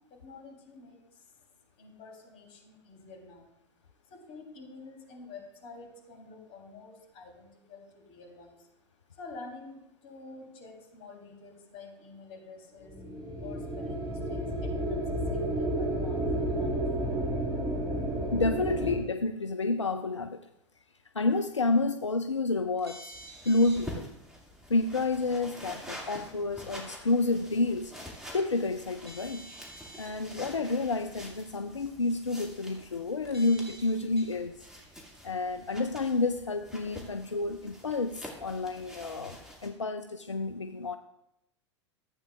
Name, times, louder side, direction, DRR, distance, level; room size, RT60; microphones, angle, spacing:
voice 1, 0.1-1.0 1.8-3.5 4.1-8.6 9.2-12.9 13.4-14.4 14.8-16.7 17.0-17.3, left 3 dB, 45° left, 1 dB, 3.4 m, -48 dB
sound 1, 12.9-19.0, right 1 dB, 25° right, 1.6 m, -31 dB
voice 2, 18.3-20.4 21.1-23.1 23.4-24.1 24.7-27.9 28.3-29.5 30.0-34.5 35.2-41.0, left 3 dB, 85° left, 9 dB, 0.4 m, -29 dB
sound 2, 22.8-23.9 25.3-25.4 29.0-30.1 31.4-31.5 33.3-34.3 35.1-35.2, right 1 dB, 70° right, 2.9 m, -48 dB
sound 3, 23.1-39.7, equal, 5° right, 2.2 m, -47 dB
14.5 x 8.5 x 2.4 m, 0.86 s
figure-of-eight pair, 85°, 15 cm